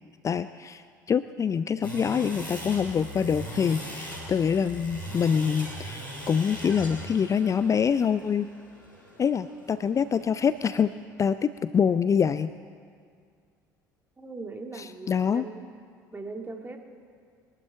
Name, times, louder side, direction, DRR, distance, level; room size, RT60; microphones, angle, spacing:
voice 1, 0.2-6.0 6.3-8.5 9.2-10.9 11.2-12.5 14.8-15.4, left 7 dB, 30° left, 14 dB, 0.4 m, -25 dB
sound 1, 1.8-11.0, equal, 90° left, 4.0 m, -40 dB
voice 2, 14.2-15.6 16.1-16.8, right 3 dB, 20° right, 3 dB, 1.9 m, -39 dB
22.0 x 11.5 x 4.6 m, 2.1 s
figure-of-eight pair, 60°, 10 cm